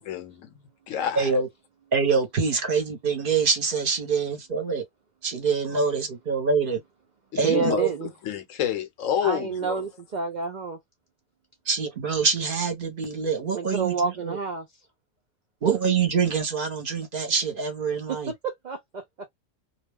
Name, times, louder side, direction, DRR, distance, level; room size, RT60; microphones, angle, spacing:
voice 1, 0.1-0.5 0.9-1.3 7.3-7.8 8.2-9.8, left 10 dB, 70° left, 0.9 m, -28 dB
voice 2, 1.1-1.5 1.9-4.8 5.2-6.8 7.3-7.9 11.7-14.4 15.6-18.3, right 5 dB, 45° right, 0.9 m, -25 dB
voice 3, 7.4-8.1 9.2-10.8 13.5-14.7 18.3-19.3, right 5 dB, 90° right, 0.4 m, -29 dB
2.3 x 2.3 x 3.2 m
omnidirectional pair, 1.5 m